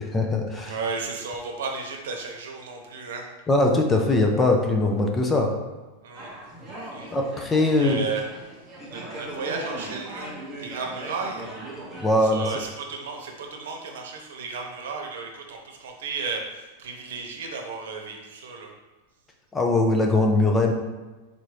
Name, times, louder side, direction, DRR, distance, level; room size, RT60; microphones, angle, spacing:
voice 1, 0.0-0.7 3.5-5.5 7.1-8.0 12.0-12.4 19.5-20.7, left 2 dB, 10° left, 2 dB, 0.4 m, -21 dB
voice 2, 0.6-3.3 6.0-6.3 6.8-7.1 7.8-8.5 8.9-10.3 10.6-11.5 12.2-18.7, right 4 dB, 80° right, 2 dB, 0.9 m, -34 dB
sound 1, 6.1-12.2, right 1 dB, 10° right, 0.9 m, -38 dB
4.2 x 2.6 x 4.7 m, 1.2 s
supercardioid pair, 170°, 0 cm